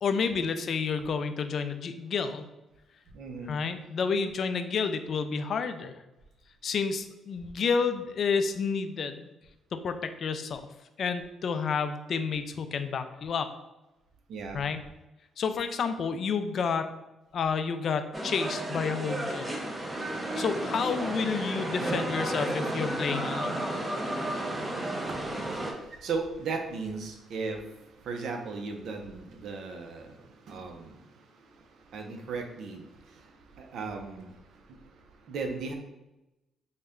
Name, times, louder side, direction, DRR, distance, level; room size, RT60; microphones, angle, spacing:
voice 1, 0.0-2.5 3.5-6.0 6.6-9.3 9.7-10.6 11.0-13.5 14.5-14.8 15.4-16.9 17.3-19.5 20.4-23.6 24.4-24.5, left 5 dB, 55° left, 9 dB, 0.3 m, -30 dB
voice 2, 3.1-3.6 14.3-14.6 25.0-35.7, right 4 dB, 70° right, 4 dB, 0.5 m, -38 dB
sound 1, 18.1-25.7, right 1 dB, 15° right, 0.6 m, -32 dB
3.9 x 2.2 x 3.6 m, 0.98 s
cardioid pair, 100°, 0 cm